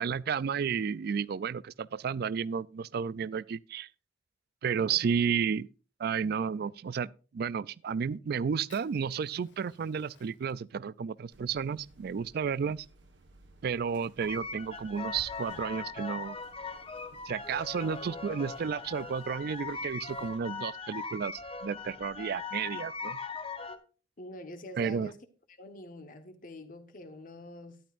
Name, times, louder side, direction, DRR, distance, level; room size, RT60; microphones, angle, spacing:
voice 1, 0.0-3.9 4.6-5.7 6.0-12.9 13.6-16.4 17.2-23.2 24.8-25.1, right 6 dB, 55° right, 0.3 m, -32 dB
Fire, 8.7-15.3, left 2 dB, 80° left, 1.8 m, -61 dB
sound 1, 11.3-20.4, right 2 dB, 75° right, 1.3 m, -59 dB
sound 2, 14.2-23.8, left 4 dB, 30° left, 0.9 m, -40 dB
voice 2, 24.2-25.2 25.5-27.8, left 1 dB, 50° left, 1.2 m, -46 dB
12.0 x 10.5 x 2.5 m
head